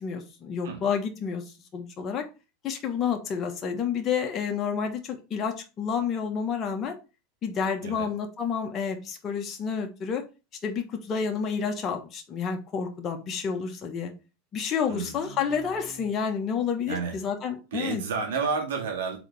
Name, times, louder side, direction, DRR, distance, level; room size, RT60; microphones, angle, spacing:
voice 1, 0.0-1.4 1.7-2.2 2.6-6.9 7.4-10.2 10.6-14.1 14.5-18.0, left 6 dB, 35° left, 4 dB, 1.2 m, -29 dB
voice 2, 14.9-16.0 16.9-17.2 17.7-19.2, right 5 dB, 85° right, 2 dB, 2.1 m, -32 dB
4.9 x 4.0 x 4.9 m, 0.31 s
supercardioid pair, 115°, 0 cm